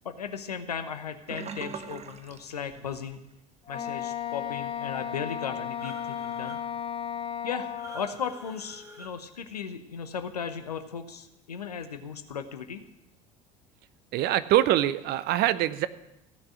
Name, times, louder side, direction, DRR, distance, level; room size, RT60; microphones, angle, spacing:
voice 1, 0.0-3.2 3.7-6.6 7.4-12.8, left 7 dB, 90° left, 9 dB, 0.9 m, -36 dB
Sink (filling or washing), 1.3-3.3 3.6-3.9 4.3-4.4, right 6 dB, 35° right, 1.1 m, -41 dB
Wind instrument woodwind instrument, 3.7-8.2, left 9 dB, 30° left, 1.1 m, -34 dB
sound 1, 5.8-6.6 7.8-9.1, right 1 dB, 15° right, 3.0 m, -47 dB
voice 2, 14.1-15.9, right 13 dB, 55° right, 15 dB, 0.8 m, -24 dB
15.5 x 6.1 x 8.4 m, 0.87 s
hypercardioid pair, 65°, 19 cm